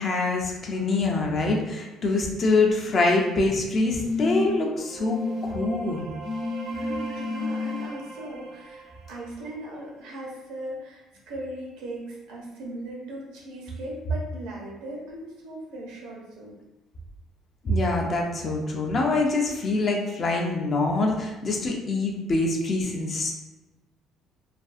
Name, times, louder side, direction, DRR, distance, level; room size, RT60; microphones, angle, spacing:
voice 1, 0.0-6.1 17.6-23.3, left 2 dB, 40° left, 0 dB, 0.4 m, -25 dB
sound 1, 2.7-3.3 4.0-4.7 5.1-5.5 6.2-7.8 9.1-9.2, left 3 dB, 60° left, 0.8 m, -31 dB
sound 2, 4.4-10.1, right 4 dB, 50° right, 0.5 m, -41 dB
voice 2, 6.7-16.6, right 1 dB, 90° right, -2 dB, 0.8 m, -38 dB
2.5 x 2.3 x 2.4 m, 1.1 s
cardioid pair, 125°, 0 cm